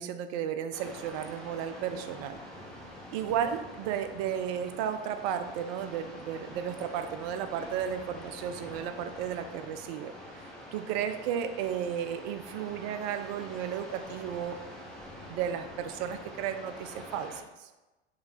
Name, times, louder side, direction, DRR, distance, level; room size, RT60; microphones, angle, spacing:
voice 1, 0.0-2.4 3.1-10.1 10.7-14.6 15.3-17.7, right 9 dB, 40° right, 8 dB, 0.4 m, -34 dB
sound 1, 0.7-17.4, left 1 dB, ahead, 0.8 m, -46 dB
3.2 x 3.0 x 3.9 m, 1.1 s
figure-of-eight pair, 85°, 34 cm